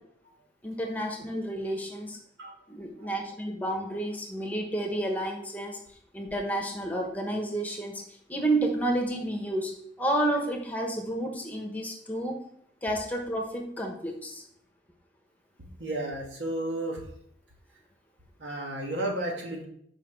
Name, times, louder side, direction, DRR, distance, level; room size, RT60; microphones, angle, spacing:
voice 1, 0.6-2.2 2.7-5.8 6.1-8.0 8.3-9.7 10.0-12.4 12.8-14.4, right 1 dB, 10° left, 2 dB, 1.1 m, -30 dB
voice 2, 15.6-17.0 18.4-19.7, right 1 dB, 85° right, 0 dB, 2.1 m, -33 dB
5.8 x 5.4 x 6.7 m, 0.68 s
head